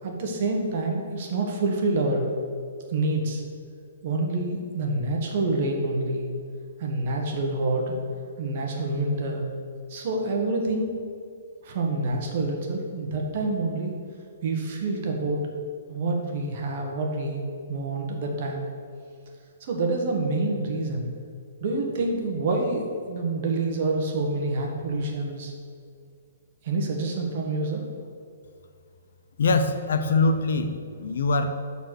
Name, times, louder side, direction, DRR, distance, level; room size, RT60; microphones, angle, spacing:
voice 1, 0.0-2.3 2.9-3.4 4.0-6.3 6.8-8.0 8.4-9.4 9.9-10.9 11.6-13.9 14.4-15.4 15.9-18.7 19.6-21.1 21.6-25.5 26.6-27.9, right 2 dB, 45° right, 1 dB, 1.3 m, -27 dB
voice 2, 29.4-31.5, left 3 dB, 70° left, 8 dB, 0.7 m, -23 dB
6.8 x 4.1 x 6.3 m, 2.3 s
hypercardioid pair, 165°, 0 cm